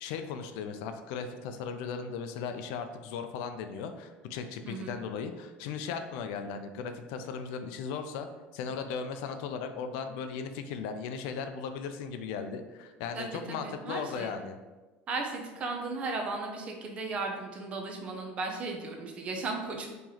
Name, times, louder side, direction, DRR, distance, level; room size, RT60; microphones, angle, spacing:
voice 1, 0.0-8.3 8.5-14.6, left 6 dB, 75° left, 8 dB, 0.3 m, -37 dB
voice 2, 4.6-5.0 13.1-14.3 15.1-19.9, right 3 dB, 30° right, 2 dB, 0.5 m, -36 dB
3.0 x 2.9 x 3.8 m, 1.2 s
cardioid pair, 170°, 4 cm